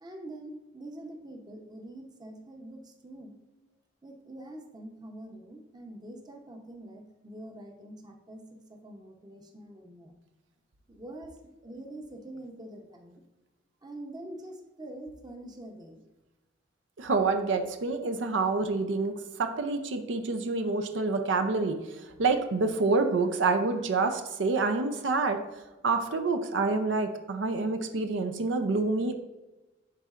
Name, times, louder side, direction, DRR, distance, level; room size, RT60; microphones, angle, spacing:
voice 1, 0.0-3.3 4.0-10.1 10.9-13.2 13.8-16.0, right 1 dB, 20° right, 2 dB, 0.8 m, -45 dB
voice 2, 17.0-19.1 19.4-21.8 22.2-25.4 25.8-29.1, right 3 dB, 80° right, 7 dB, 0.5 m, -27 dB
10.5 x 3.9 x 2.4 m, 1.1 s
head